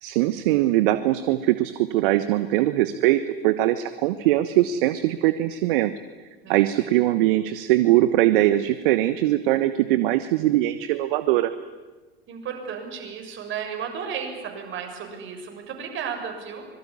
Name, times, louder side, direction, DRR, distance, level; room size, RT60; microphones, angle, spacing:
voice 1, 0.0-5.9 6.5-11.5, right 15 dB, 55° right, 13 dB, 1.2 m, -21 dB
voice 2, 6.4-6.9 12.3-16.7, right 7 dB, 40° right, 4 dB, 6.9 m, -34 dB
25.5 x 22.5 x 9.8 m, 1.3 s
figure-of-eight pair, 80°, 31 cm